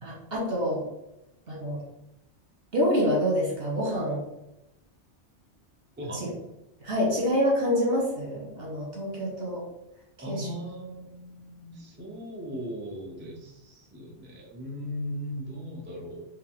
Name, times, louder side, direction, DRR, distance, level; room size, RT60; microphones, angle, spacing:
voice 1, 0.0-0.8 1.5-1.8 2.7-4.2 6.1-6.3 6.8-9.6 10.3-10.5, equal, 55° right, -4 dB, 1.9 m, -27 dB
voice 2, 6.0-6.3 10.2-16.3, equal, 10° right, -2 dB, 0.6 m, -38 dB
4.6 x 3.0 x 3.7 m, 0.89 s
omnidirectional pair, 1.2 m